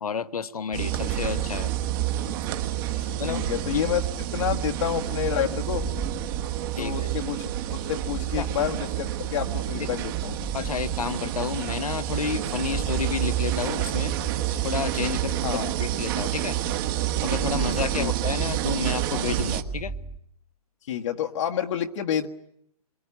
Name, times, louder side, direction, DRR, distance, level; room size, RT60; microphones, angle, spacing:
voice 1, 0.0-1.7 2.9-3.5 3.7-3.8 6.8-6.9 8.4-8.5 10.5-14.1 14.6-15.4 15.8-16.6 17.2-19.9, left 6 dB, 70° left, 12 dB, 1.5 m, -30 dB
sound 1, 0.7-19.6, right 12 dB, 35° right, 1.6 m, -28 dB
sound 2, 0.9-2.4 3.2-4.9 5.4-7.2 7.8-9.3 10.0-11.8 12.4-14.0 14.7-16.4 17.0-18.8 19.3-20.2, right 4 dB, ahead, 1.4 m, -38 dB
voice 2, 3.2-4.1 4.3-5.9 6.8-10.4 15.4-15.7 18.0-18.1 20.9-22.3, left 10 dB, 50° left, 2 dB, 1.6 m, -29 dB
26.5 x 23.0 x 9.8 m, 0.72 s
hypercardioid pair, 135°, 20 cm